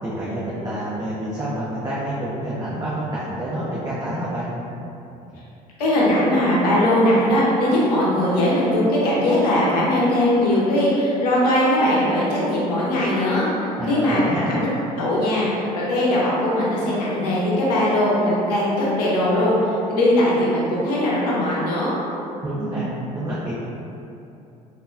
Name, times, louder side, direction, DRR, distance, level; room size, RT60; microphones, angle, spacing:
voice 1, 0.0-4.5 13.8-14.6 22.4-22.9 23.1-23.6, right 1 dB, 20° right, -9 dB, 0.8 m, -28 dB
voice 2, 5.8-13.5 13.9-14.7 15.0-19.5 19.9-22.0, left 1 dB, 85° left, -6 dB, 0.8 m, -20 dB
3.7 x 2.7 x 2.5 m, 2.8 s
hypercardioid pair, 65°, 20 cm